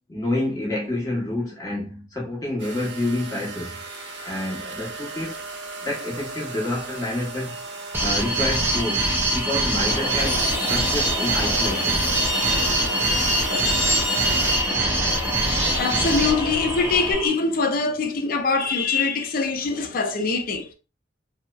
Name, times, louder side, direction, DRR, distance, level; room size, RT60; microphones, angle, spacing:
voice 1, 0.1-3.8 4.2-5.4 5.8-7.5 8.0-12.1 14.3-14.4, left 1 dB, 20° left, 0.9 m, -28 dB
sound 1, 2.6-14.6, right 3 dB, 75° right, 0.5 m, -37 dB
sound 2, 7.9-17.3, right 2 dB, 10° right, 0.4 m, -24 dB
Truck, 9.7-17.1, left 1 dB, 70° left, 0.9 m, -29 dB
voice 2, 15.8-20.7, left 4 dB, 50° left, 0.4 m, -23 dB
2.8 x 2.0 x 2.2 m
head